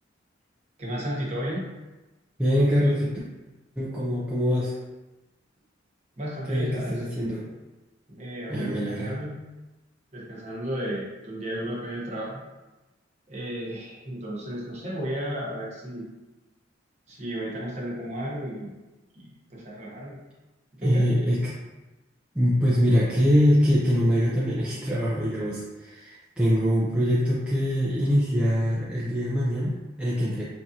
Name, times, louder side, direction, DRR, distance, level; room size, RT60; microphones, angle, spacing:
voice 1, 0.8-1.6 6.2-7.0 8.2-9.4 10.1-12.4 13.3-16.1 17.1-18.7 19.1-20.2 20.7-21.1, equal, 35° right, -5 dB, 1.0 m, -33 dB
voice 2, 2.4-3.2 3.8-4.7 6.4-7.5 8.5-9.1 20.8-21.6 22.3-30.4, equal, 5° right, -8 dB, 0.4 m, -23 dB
4.5 x 2.4 x 2.8 m, 1.1 s
head